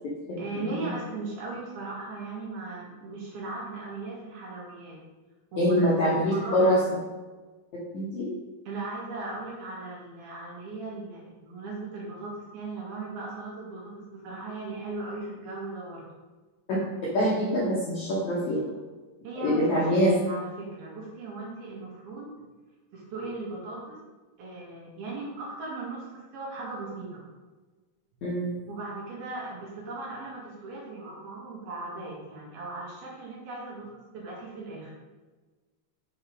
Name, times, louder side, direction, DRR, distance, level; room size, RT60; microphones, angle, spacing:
voice 1, 0.4-5.0 5.5-5.9 6.1-6.8 8.7-16.1 19.2-22.3 22.9-24.0 24.4-27.2 28.7-34.9, right 3 dB, 65° right, -4 dB, 3.6 m, -38 dB
voice 2, 5.6-6.8 7.9-8.3 16.7-16.8 17.1-18.7 19.4-20.1 28.2-28.5, equal, 70° left, -5 dB, 1.8 m, -24 dB
7.4 x 4.3 x 5.4 m, 1.3 s
omnidirectional pair, 5.0 m